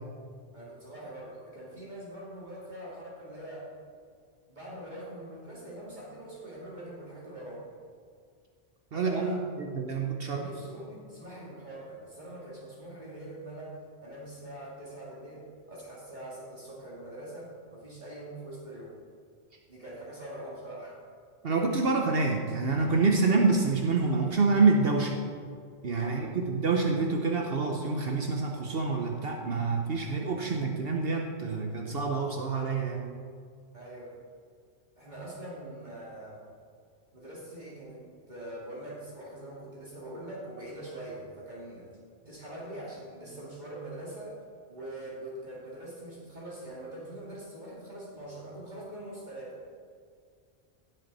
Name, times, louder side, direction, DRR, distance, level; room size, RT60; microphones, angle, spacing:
voice 1, 0.5-3.7 4.5-7.6 8.9-9.4 10.2-13.7 14.0-19.0 19.7-20.9 26.0-26.3 33.7-34.1 35.0-36.4 37.1-41.9 42.3-44.4 44.7-49.6, right 1 dB, 45° right, -6 dB, 2.6 m, -43 dB
voice 2, 8.9-10.4 21.4-25.1 25.8-33.1, right 4 dB, 65° right, 2 dB, 1.1 m, -27 dB
16.0 x 7.9 x 4.1 m, 2.1 s
omnidirectional pair, 1.1 m